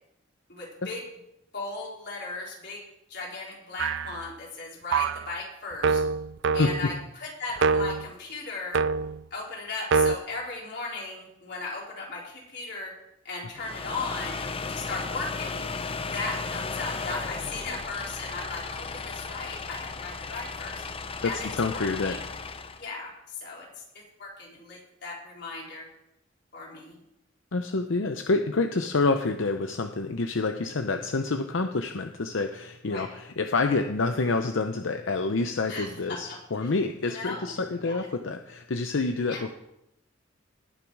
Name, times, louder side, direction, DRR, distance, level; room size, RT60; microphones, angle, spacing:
voice 1, 0.5-1.0 1.5-2.8 3.1-6.0 6.5-8.8 9.3-12.9 13.2-14.4 14.7-15.7 16.0-20.8 21.2-22.2 22.8-23.7 23.9-25.9 26.5-27.0 32.8-33.1 35.7-36.7 37.0-37.5 37.8-38.1 39.3-39.4, left 3 dB, 60° left, -3 dB, 4.2 m, -37 dB
sound 1, 3.8-4.3 4.9-5.3 5.8-7.0 7.6-8.1 8.7-9.2 9.9-10.2, right 5 dB, 65° right, 0.4 m, -25 dB
sound 2, 13.5-22.9, left 4 dB, 30° left, 0.6 m, -35 dB
voice 2, 21.2-22.2 27.5-39.5, left 3 dB, 90° left, 6 dB, 0.7 m, -27 dB
18.5 x 7.1 x 4.8 m, 0.83 s
head